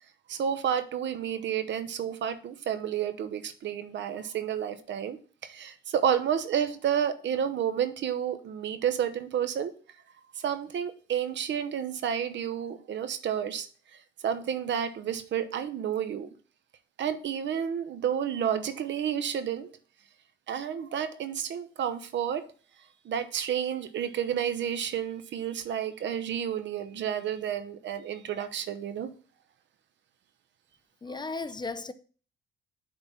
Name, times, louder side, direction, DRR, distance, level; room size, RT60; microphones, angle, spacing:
voice 1, 0.3-9.7 10.4-13.7 13.9-16.3 17.0-19.8 20.5-22.5 23.0-29.1, right 9 dB, 65° right, 0.9 m, -30 dB
voice 2, 31.0-31.9, left 3 dB, 20° left, 0.5 m, -35 dB
7.0 x 3.9 x 5.7 m
cardioid pair, 90°, 20 cm